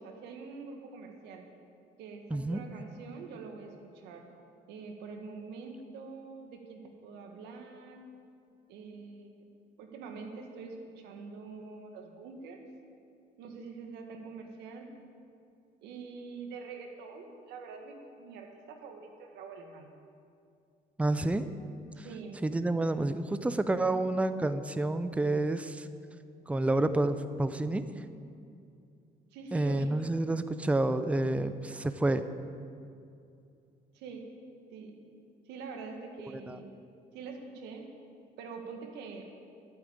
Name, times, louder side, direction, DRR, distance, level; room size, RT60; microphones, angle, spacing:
voice 1, 0.0-1.5 2.0-4.3 4.7-8.0 8.7-9.3 9.8-12.6 13.4-14.9 15.8-19.9 21.9-22.4 29.3-30.0 33.9-34.3 34.7-34.9 35.5-36.7 37.1-37.9 38.4-39.3, right 4 dB, 90° right, 3 dB, 1.8 m, -45 dB
voice 2, 2.3-2.6 21.0-21.5 22.0-22.1 22.4-25.9 26.5-28.0 29.5-32.2 36.3-36.6, right 2 dB, 10° right, 11 dB, 0.6 m, -29 dB
12.0 x 9.0 x 8.7 m, 2.5 s
cardioid pair, 110°, 17 cm